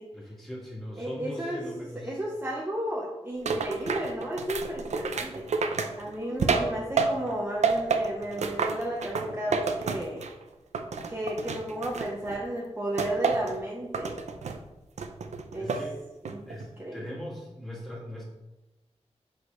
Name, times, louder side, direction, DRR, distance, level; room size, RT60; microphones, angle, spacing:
voice 1, 0.1-2.2 15.6-16.1 16.4-18.2, equal, 5° left, -6 dB, 2.0 m, -40 dB
voice 2, 1.0-1.6 2.0-5.5 6.0-10.3 11.1-14.2 15.5-15.8 16.2-16.4 16.8-17.2, right 1 dB, 20° right, -3 dB, 0.8 m, -33 dB
sound 1, 3.5-7.4 7.6-10.4 10.7-12.4 13.0-13.6 13.9-14.6 15.0-15.9 16.3-16.7, right 4 dB, 85° right, 0.5 m, -29 dB
6.1 x 5.2 x 3.1 m, 1.0 s
wide cardioid pair, 135°, 12 cm